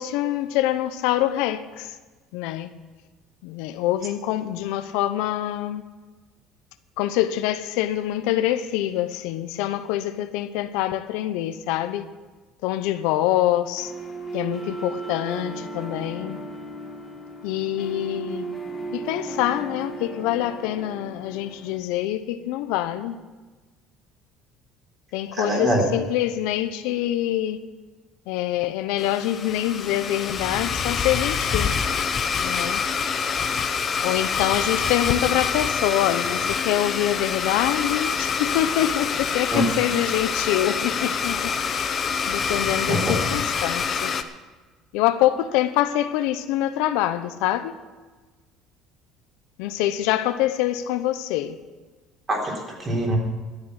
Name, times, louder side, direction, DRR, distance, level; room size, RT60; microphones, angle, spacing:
voice 1, 0.0-1.9 2.3-2.7 3.4-5.8 7.0-12.1 12.6-13.9 14.3-16.4 17.4-18.5 18.9-23.2 25.1-27.6 28.3-31.7 32.4-32.8 34.0-41.9 42.3-44.1 44.9-47.7 49.6-51.6, left 13 dB, 80° left, 0.8 m, -25 dB
sound 1, 13.8-21.8, right 3 dB, 15° left, 2.2 m, -35 dB
voice 2, 25.3-25.8 39.5-39.6 42.9-43.1 52.3-53.2, right 1 dB, 25° right, 3.7 m, -24 dB
Domestic sounds home sounds, 29.0-44.2, left 6 dB, 35° left, 0.8 m, -26 dB
12.5 x 7.3 x 9.6 m
cardioid pair, 130°, 0 cm